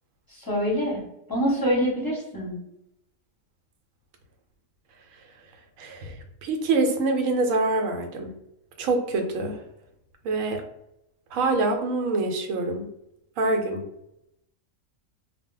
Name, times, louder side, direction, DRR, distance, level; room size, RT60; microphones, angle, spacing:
voice 1, 0.4-1.0 1.3-2.6, equal, 20° left, -6 dB, 0.7 m, -25 dB
voice 2, 5.8-6.1 6.4-8.3 8.8-9.6 10.2-10.6 11.3-12.9 13.4-13.8, right 3 dB, 85° right, 4 dB, 1.0 m, -25 dB
2.3 x 2.1 x 3.7 m, 0.82 s
omnidirectional pair, 1.4 m